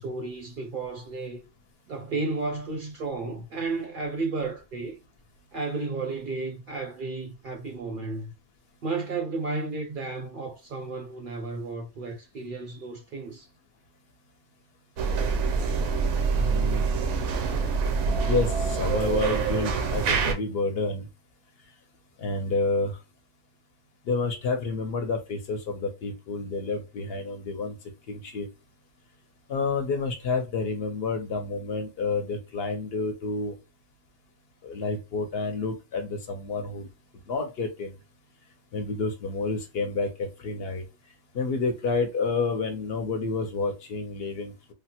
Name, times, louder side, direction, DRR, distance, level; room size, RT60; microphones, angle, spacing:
voice 1, 0.0-1.4 1.9-5.0 5.5-8.3 8.8-13.5, right 3 dB, 60° right, 0.6 m, -33 dB
sound 1, 15.0-20.3, right 5 dB, 80° right, 0.9 m, -25 dB
voice 2, 16.4-16.8 18.2-21.1 22.2-23.0 24.1-27.7 28.1-28.5 29.5-33.6 34.6-36.9 37.3-37.9 38.7-40.8 41.3-44.5, left 3 dB, 65° left, 0.7 m, -29 dB
3.3 x 2.0 x 2.7 m
omnidirectional pair, 1.2 m